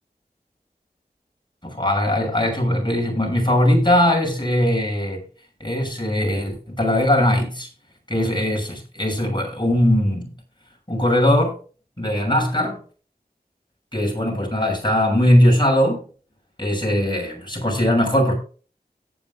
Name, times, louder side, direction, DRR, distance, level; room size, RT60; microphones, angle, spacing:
voice 1, 1.6-5.2 5.6-7.7 8.1-10.3 10.9-11.6 12.0-12.8 13.9-16.0 16.6-18.3, left 1 dB, 30° left, 6.7 m, -20 dB
17.0 x 10.0 x 2.4 m
wide cardioid pair, 40°, 17 cm